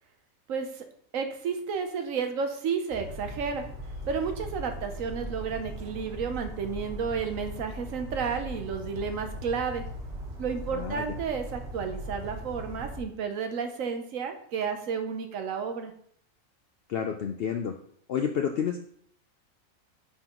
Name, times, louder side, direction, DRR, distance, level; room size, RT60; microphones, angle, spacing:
voice 1, 0.5-0.8 1.1-3.6 4.1-9.8 10.4-15.9, right 6 dB, 70° right, 6 dB, 1.1 m, -32 dB
Bird vocalization bird call bird song, 2.9-13.0, right 1 dB, 55° right, 1.6 m, -39 dB
voice 2, 10.7-11.0 16.9-17.8 18.1-18.8, left 7 dB, 70° left, 4 dB, 0.6 m, -29 dB
9.8 x 3.9 x 3.0 m, 0.64 s
omnidirectional pair, 1.4 m